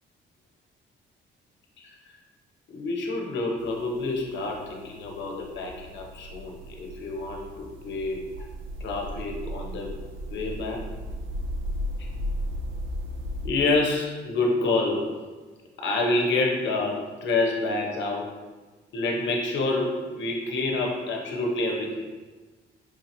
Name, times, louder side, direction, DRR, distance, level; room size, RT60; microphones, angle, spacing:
voice 1, 2.7-8.3 8.8-10.9 13.4-15.1 15.8-18.3 18.9-22.1, left 2 dB, 65° left, 1 dB, 0.8 m, -28 dB
sound 1, 3.6-13.5, equal, 80° right, 0.4 m, -36 dB
4.7 x 2.8 x 2.6 m, 1.3 s
cardioid pair, 90°, 20 cm